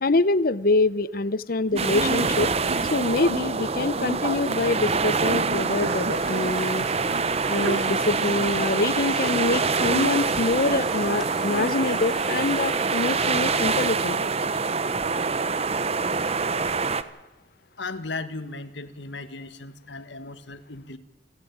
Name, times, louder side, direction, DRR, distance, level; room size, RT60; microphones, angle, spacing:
voice 1, 0.0-2.5 2.9-6.9 7.5-14.2, left 2 dB, 55° left, 17 dB, 0.8 m, -25 dB
Sneeze, 1.7-11.7, right 1 dB, 80° right, 1.7 m, -37 dB
sound 1, 1.8-17.0, right 4 dB, 35° right, 0.9 m, -25 dB
sound 2, 6.1-13.6, equal, ahead, 1.3 m, -41 dB
voice 2, 17.8-21.0, left 3 dB, 80° left, 12 dB, 1.6 m, -36 dB
29.5 x 12.0 x 8.6 m, 1.1 s
head